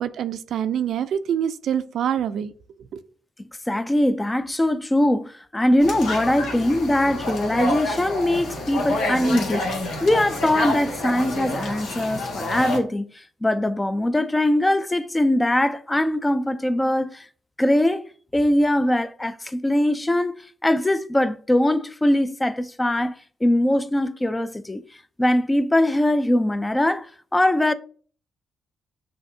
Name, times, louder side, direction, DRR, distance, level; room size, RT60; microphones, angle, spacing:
voice 1, 0.0-2.5, right 9 dB, 65° right, 0.4 m, -25 dB
voice 2, 3.7-9.7 10.0-17.3 17.6-18.0 18.3-20.4 20.6-23.1 23.4-24.8 25.2-27.7, left 1 dB, 15° left, 0.3 m, -21 dB
sound 1, 5.8-12.8, left 2 dB, 70° left, 1.3 m, -28 dB
6.3 x 2.7 x 2.6 m
cardioid pair, 90°, 0 cm